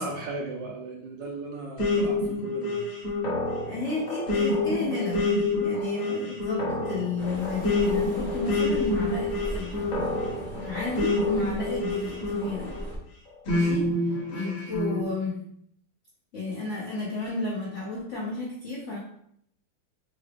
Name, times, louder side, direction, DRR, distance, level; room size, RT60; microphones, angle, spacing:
voice 1, 0.0-2.8 6.0-6.3, right 2 dB, 75° right, 0 dB, 1.1 m, -36 dB
sound 1, 1.8-12.8 13.5-15.0, left 2 dB, 50° left, 1.2 m, -27 dB
voice 2, 3.7-5.3 5.6-9.9 10.6-12.7 13.4-15.4 16.3-19.0, left 3 dB, 80° left, -5 dB, 0.6 m, -32 dB
sound 2, 7.2-13.0, equal, 10° left, 0.6 m, -38 dB
3.8 x 2.3 x 3.3 m, 0.70 s
omnidirectional pair, 2.3 m